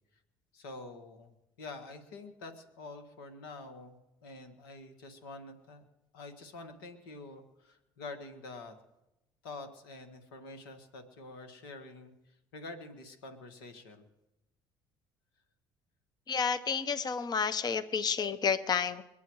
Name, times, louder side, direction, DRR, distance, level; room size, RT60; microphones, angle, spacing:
voice 1, 0.5-5.9 6.1-8.8 9.4-14.1, left 3 dB, 90° left, 8 dB, 1.8 m, -47 dB
voice 2, 16.3-19.0, left 6 dB, 35° left, 12 dB, 0.9 m, -30 dB
23.5 x 8.2 x 4.8 m, 0.95 s
hypercardioid pair, 70°, 11 cm